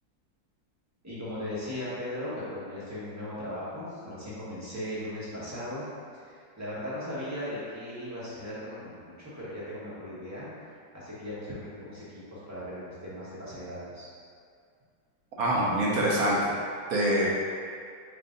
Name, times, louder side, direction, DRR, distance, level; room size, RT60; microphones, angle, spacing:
voice 1, 1.0-14.1, left 1 dB, 15° right, -11 dB, 0.7 m, -38 dB
voice 2, 15.4-16.5 16.9-17.3, right 1 dB, 65° right, -5 dB, 1.0 m, -25 dB
4.6 x 2.6 x 3.7 m, 2.2 s
omnidirectional pair, 2.1 m